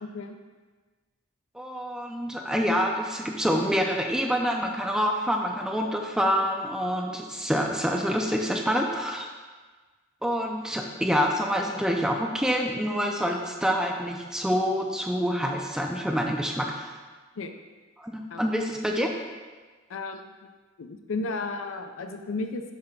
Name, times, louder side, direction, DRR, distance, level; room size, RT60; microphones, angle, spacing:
voice 1, 0.0-0.4 17.4-17.5 18.3-18.5 19.9-20.5 20.8-22.6, left 3 dB, 90° left, 5 dB, 0.5 m, -34 dB
voice 2, 1.5-9.3 10.2-16.9 18.0-19.1, equal, 5° right, 1 dB, 0.4 m, -27 dB
7.6 x 3.3 x 5.8 m, 1.4 s
head